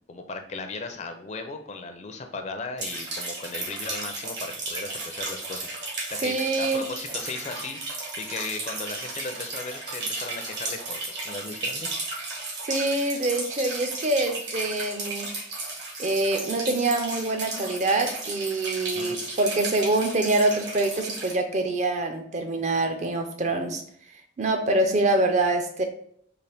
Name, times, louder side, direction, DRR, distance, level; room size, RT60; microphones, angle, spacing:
voice 1, 0.0-11.9 18.9-19.2, left 3 dB, 35° left, 6 dB, 0.4 m, -37 dB
sound 1, 2.8-21.3, right 2 dB, 65° right, 1.2 m, -34 dB
voice 2, 6.2-6.9 12.6-15.3 16.0-23.8 24.4-25.8, right 2 dB, 40° right, 5 dB, 0.5 m, -25 dB
3.8 x 2.4 x 3.4 m, 0.65 s
head